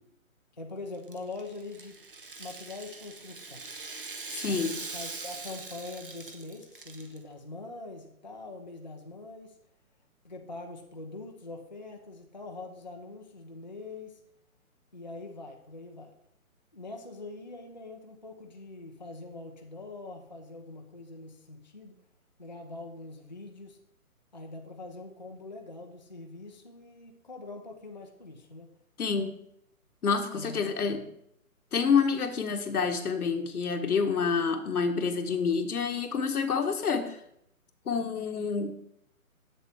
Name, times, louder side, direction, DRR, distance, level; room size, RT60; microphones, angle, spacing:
voice 1, 0.6-1.9 2.4-3.6 4.5-9.5 10.2-14.2 14.9-16.1 16.7-21.9 22.4-23.8 24.3-28.7 30.3-31.0 32.0-32.2, left 2 dB, 30° left, 2 dB, 0.5 m, -43 dB
Rattle (instrument), 0.9-7.2, right 3 dB, 40° right, 0.6 m, -42 dB
voice 2, 4.3-4.8 29.0-29.4 30.0-31.0 31.7-37.2 37.9-38.7, left 5 dB, 90° left, 7 dB, 1.2 m, -28 dB
7.5 x 6.6 x 3.3 m, 0.73 s
hypercardioid pair, 170°, 44 cm